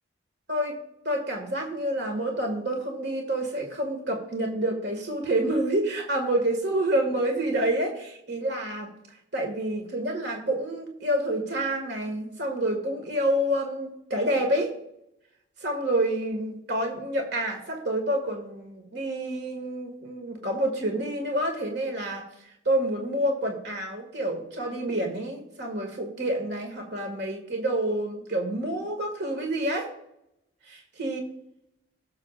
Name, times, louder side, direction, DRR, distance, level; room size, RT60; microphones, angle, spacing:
voice 1, 1.0-8.9 9.3-14.7 15.6-22.3 22.7-29.9 30.7-31.2, right 1 dB, 55° right, 3 dB, 2.1 m, -28 dB
16.5 x 6.9 x 2.5 m, 0.80 s
head